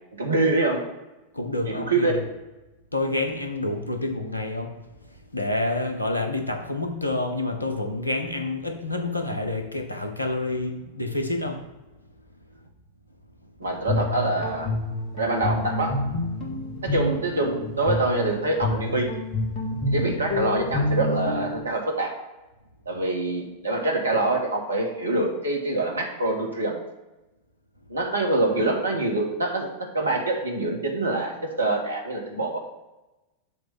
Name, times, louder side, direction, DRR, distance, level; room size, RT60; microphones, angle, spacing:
voice 1, 0.2-0.8 1.7-2.1 13.6-14.7 15.1-16.0 16.8-19.1 19.9-22.1 22.8-26.8 27.9-32.6, right 2 dB, 75° right, 2 dB, 1.4 m, -25 dB
voice 2, 1.3-2.2 2.9-4.8 5.3-11.6, left 2 dB, 85° left, 4 dB, 1.0 m, -28 dB
Guitar, 13.6-21.6, left 1 dB, 30° left, 2.1 m, -28 dB
6.9 x 3.3 x 5.9 m, 1.1 s
figure-of-eight pair, 90°, 0 cm